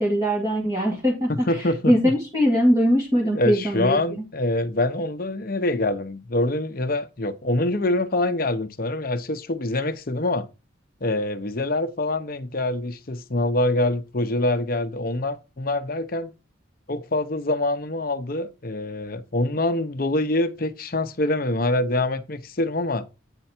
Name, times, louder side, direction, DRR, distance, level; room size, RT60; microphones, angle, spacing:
voice 1, 0.0-1.5 1.9-4.2, equal, 15° right, 2.2 m, -21 dB
voice 2, 1.3-2.1 3.3-10.5 11.0-16.3 16.9-23.0, left 2 dB, 45° left, 0.8 m, -25 dB
8.9 x 4.6 x 4.3 m
head